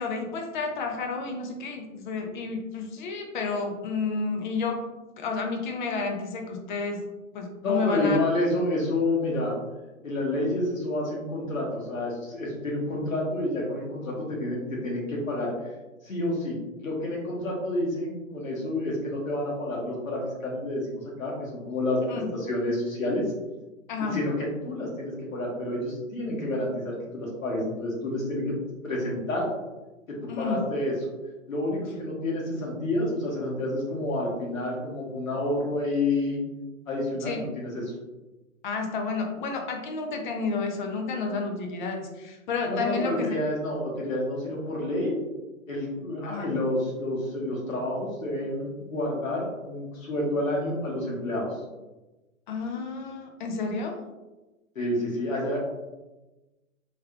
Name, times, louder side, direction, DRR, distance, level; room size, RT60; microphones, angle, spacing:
voice 1, 0.0-4.8 5.2-7.1 7.3-8.2 22.1-22.3 23.9-24.2 30.3-30.6 37.2-37.4 38.6-43.3 46.2-46.5 52.5-54.0, left 4 dB, 35° left, 3 dB, 0.6 m, -31 dB
voice 2, 7.6-9.5 10.0-15.7 16.0-23.2 24.1-28.6 28.8-29.5 30.4-30.9 31.5-36.4 36.9-37.8 42.7-45.2 45.7-51.5 54.7-55.6, left 1 dB, 80° left, -2 dB, 1.4 m, -29 dB
3.5 x 3.2 x 2.3 m, 1.1 s
figure-of-eight pair, 120°, 40 cm